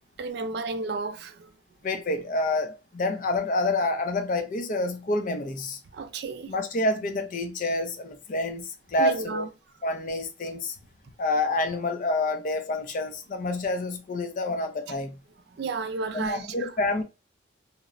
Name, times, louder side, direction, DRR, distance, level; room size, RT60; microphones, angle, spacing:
voice 1, 0.2-1.5 5.9-6.5 9.0-9.5 14.9-15.0 15.5-16.8, right 4 dB, 55° right, 0.3 m, -33 dB
voice 2, 1.8-5.8 6.5-9.4 9.8-10.8 11.2-15.2 16.1-17.0, left 2 dB, 40° left, 0.4 m, -28 dB
2.8 x 2.0 x 2.4 m
head